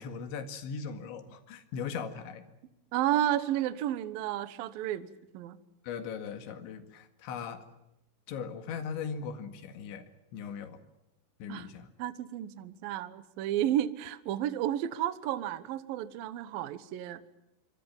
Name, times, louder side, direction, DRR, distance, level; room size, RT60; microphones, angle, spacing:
voice 1, 0.0-2.5 5.8-7.6 8.3-10.8 11.4-11.9, left 6 dB, 70° left, 8 dB, 4.2 m, -39 dB
voice 2, 2.9-5.6 11.5-11.7 12.0-17.2, right 12 dB, 70° right, 13 dB, 2.2 m, -32 dB
26.5 x 25.5 x 7.2 m, 0.89 s
omnidirectional pair, 5.7 m